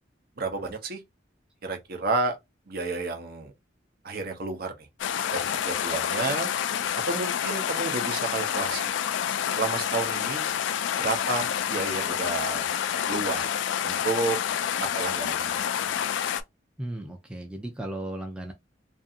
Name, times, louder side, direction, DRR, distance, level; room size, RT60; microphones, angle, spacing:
voice 1, 0.4-1.0 1.6-2.4 2.7-3.5 4.0-4.9 5.3-6.5 7.1-8.9 9.5-10.5 11.0-12.7 13.1-13.5 13.8-14.4 14.8-15.6, right 3 dB, 55° right, 0.7 m, -31 dB
sound 1, 5.0-16.4, left 9 dB, 75° left, 0.3 m, -28 dB
voice 2, 16.8-18.5, right 1 dB, 5° right, 0.4 m, -35 dB
2.6 x 2.6 x 2.4 m
head